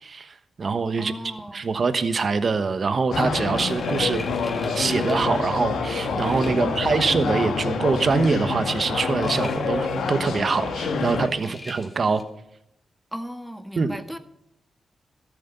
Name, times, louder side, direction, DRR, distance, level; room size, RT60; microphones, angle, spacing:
voice 1, 0.0-1.1 1.5-4.2 4.7-12.2 13.8-14.0, right 4 dB, 55° right, 12 dB, 1.2 m, -24 dB
voice 2, 1.0-1.7 6.6-7.0 11.4-11.6 13.1-14.2, equal, 5° right, 9 dB, 1.6 m, -36 dB
sound 1, 3.1-11.3, left 4 dB, 85° left, 1.5 m, -26 dB
sound 2, 3.5-5.9 6.2-6.9 7.3-7.4 9.0-9.8 10.1-10.2 11.0-12.2, left 2 dB, 30° left, 3.1 m, -43 dB
13.5 x 8.5 x 7.0 m, 0.81 s
cardioid pair, 55°, 0 cm